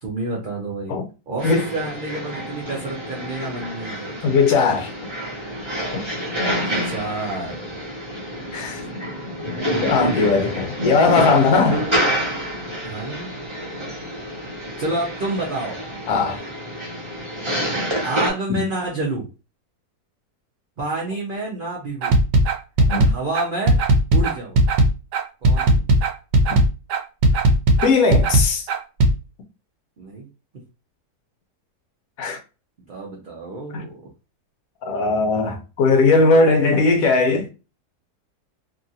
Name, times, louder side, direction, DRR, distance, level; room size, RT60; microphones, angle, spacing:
voice 1, 0.0-1.0 1.3-4.2 6.2-7.7 10.1-10.2 12.8-13.4 14.8-15.8 18.0-19.3 20.8-22.2 23.0-23.8 24.1-24.6 25.4-25.8 30.0-30.3 32.9-34.0, right 2 dB, 60° right, 0.5 m, -29 dB
sound 1, 1.4-18.3, equal, 25° right, 0.8 m, -28 dB
voice 2, 4.2-5.1 8.5-8.8 9.8-11.9 16.1-16.4 18.5-18.6 22.9-23.1 27.8-28.7 32.2-32.4 33.7-33.9 34.8-37.5, left 4 dB, 70° left, 0.9 m, -18 dB
sound 2, 22.0-29.1, right 1 dB, 85° right, 1.1 m, -16 dB
2.8 x 2.4 x 2.7 m
omnidirectional pair, 1.7 m